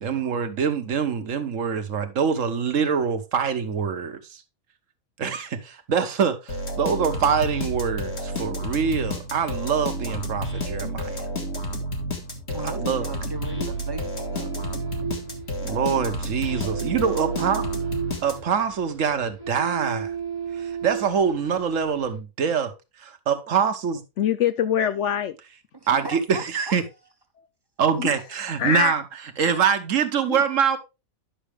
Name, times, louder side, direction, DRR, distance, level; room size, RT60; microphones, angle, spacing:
voice 1, 0.0-4.4 5.2-11.2 12.6-13.1 15.6-17.7 18.2-20.1 20.6-22.7 23.0-24.0 25.9-26.8 27.8-29.0 29.4-30.8, right 6 dB, 65° right, 1.3 m, -24 dB
sound 1, 6.5-18.7, equal, 50° left, 2.1 m, -30 dB
voice 2, 12.5-14.5 25.7-26.8, right 2 dB, 20° right, 0.8 m, -37 dB
sound 2, 12.9-22.2, right 7 dB, 85° left, 5.6 m, -35 dB
voice 3, 24.2-25.4 27.4-27.5 28.0-28.1 28.6-28.9 30.3-30.4, left 9 dB, 65° left, 0.8 m, -24 dB
10.0 x 6.1 x 3.4 m
omnidirectional pair, 1.5 m